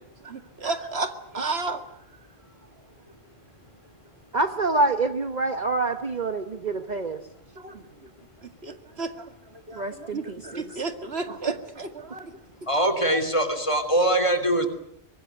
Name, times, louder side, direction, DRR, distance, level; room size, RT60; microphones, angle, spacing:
voice 1, 0.2-1.8 7.6-8.1 8.4-12.3, right 3 dB, 70° right, 8 dB, 2.3 m, -33 dB
voice 2, 4.3-7.2 9.7-10.7, right 3 dB, 40° right, 8 dB, 1.3 m, -26 dB
voice 3, 12.7-14.7, right 1 dB, 30° left, 8 dB, 3.3 m, -22 dB
24.0 x 20.5 x 9.3 m, 0.73 s
omnidirectional pair, 1.1 m